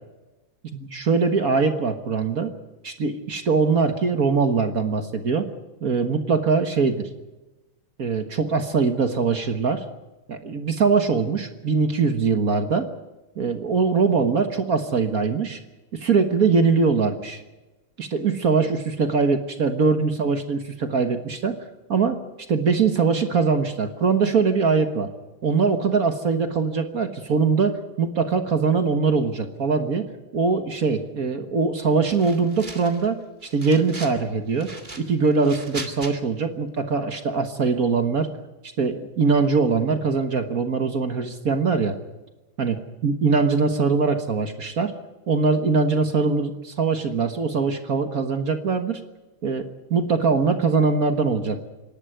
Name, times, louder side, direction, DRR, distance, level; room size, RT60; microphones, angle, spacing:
voice 1, 0.7-2.5 2.8-5.5 5.8-7.1 8.0-9.8 10.3-12.9 13.4-15.6 15.9-17.4 18.0-21.6 21.9-22.2 22.5-25.1 25.4-30.0 30.3-33.1 33.4-34.7 35.0-38.3 38.8-42.0 42.6-44.9 45.3-49.0 49.4-51.7, right 4 dB, 45° right, 7 dB, 1.6 m, -22 dB
sound 1, 32.1-33.1 33.4-34.2 34.6-36.1, right 2 dB, 25° right, 2.1 m, -38 dB
26.5 x 11.5 x 9.6 m, 1.1 s
omnidirectional pair, 2.3 m